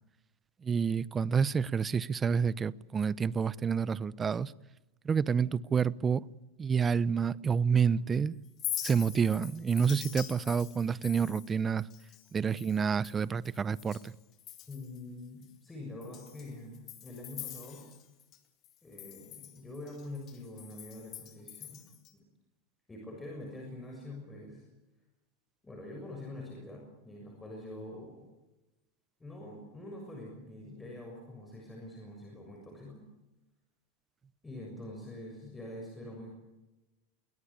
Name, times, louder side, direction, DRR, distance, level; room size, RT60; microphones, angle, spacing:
voice 1, 0.6-4.5 5.0-6.2 6.6-8.3 8.8-11.9 12.3-14.1, right 6 dB, 20° right, 0.7 m, -28 dB
Chink clink, 8.4-14.1 14.4-15.0 15.4-15.5 16.0-18.4 18.6-22.1, left 12 dB, 40° left, 2.9 m, -44 dB
voice 2, 14.7-17.8 18.8-21.8 22.9-24.6 25.6-28.3 29.2-33.0 34.4-36.3, left 1 dB, 10° left, 6.7 m, -45 dB
23.0 x 18.0 x 8.7 m
supercardioid pair, 125°, 0 cm